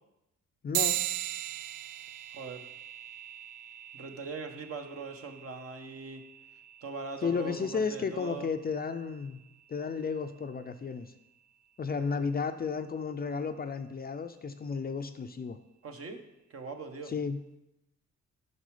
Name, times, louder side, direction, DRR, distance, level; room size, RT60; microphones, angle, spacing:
voice 1, 0.6-1.0 7.2-9.4 9.7-11.1 11.8-15.6 17.1-17.4, left 5 dB, 30° left, 8 dB, 0.5 m, -33 dB
sound 1, 0.7-10.6, right 13 dB, 90° right, 0.5 m, -39 dB
voice 2, 2.3-2.6 3.9-6.2 6.8-8.5 15.8-16.2 16.5-17.1, right 4 dB, 50° right, 5 dB, 1.2 m, -41 dB
9.3 x 6.0 x 4.9 m, 0.91 s
cardioid pair, 90°, 30 cm